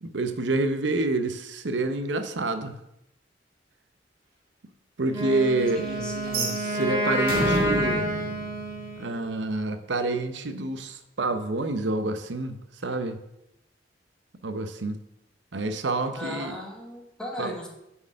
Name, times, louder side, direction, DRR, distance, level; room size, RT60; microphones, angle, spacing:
voice 1, 0.0-2.8 5.0-5.8 6.5-8.0 9.0-13.2 14.4-15.0 15.5-16.6 17.4-17.5, right 2 dB, 80° right, 9 dB, 0.8 m, -28 dB
Wind instrument woodwind instrument, 5.1-9.2, right 1 dB, 20° right, 2.0 m, -28 dB
voice 2, 5.7-6.7 16.1-17.7, left 1 dB, 5° left, -1 dB, 1.4 m, -37 dB
sound 1, 6.2-9.3, right 1 dB, 55° right, 1.6 m, -30 dB
6.9 x 4.6 x 6.3 m, 0.85 s
head